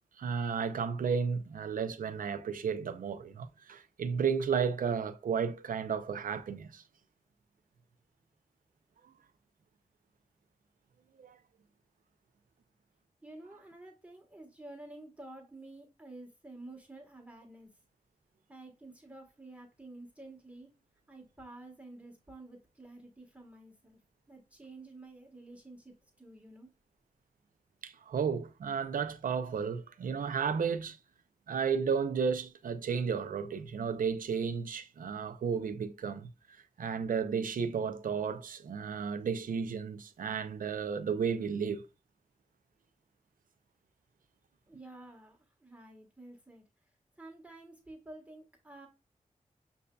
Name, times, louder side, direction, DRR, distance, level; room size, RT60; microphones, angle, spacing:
voice 1, 0.2-6.8 11.2-11.4 27.8-31.0 31.5-36.3 36.8-41.8, right 6 dB, 90° right, 0.5 m, -33 dB
voice 2, 13.2-17.7 18.5-20.7 21.1-24.0 24.3-26.7 44.7-46.7 47.2-48.9, right 2 dB, 10° right, 1.3 m, -50 dB
7.0 x 2.7 x 2.2 m
cardioid pair, 55°, 14 cm